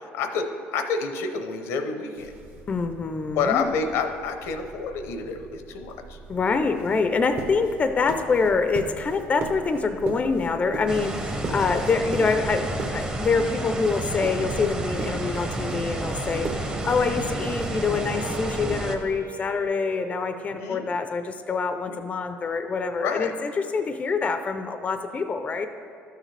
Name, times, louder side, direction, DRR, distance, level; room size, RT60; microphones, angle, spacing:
voice 1, 0.0-2.3 3.3-6.2 20.5-20.8 21.9-22.0 23.0-23.3, left 5 dB, 75° left, 7 dB, 0.7 m, -28 dB
sound 1, 2.2-19.2, right 3 dB, 45° right, 1.0 m, -39 dB
voice 2, 2.7-3.7 6.3-25.7, left 4 dB, 30° left, 8 dB, 0.5 m, -25 dB
sound 2, 10.9-19.0, right 1 dB, 20° right, 0.8 m, -30 dB
Wind instrument woodwind instrument, 16.4-20.7, right 9 dB, 70° right, 0.5 m, -42 dB
12.0 x 6.5 x 3.3 m, 2.4 s
cardioid pair, 95°, 5 cm